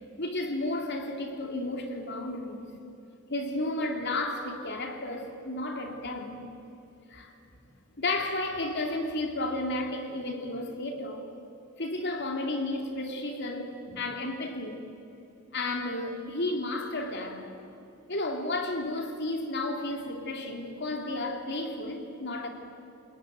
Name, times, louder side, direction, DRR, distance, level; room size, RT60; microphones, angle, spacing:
voice 1, 0.2-2.7 3.3-6.4 7.1-7.3 8.0-11.2 11.8-14.8 15.5-17.5 18.1-22.5, left 2 dB, 55° left, 3.1 m, -32 dB
29.0 x 20.0 x 9.2 m
head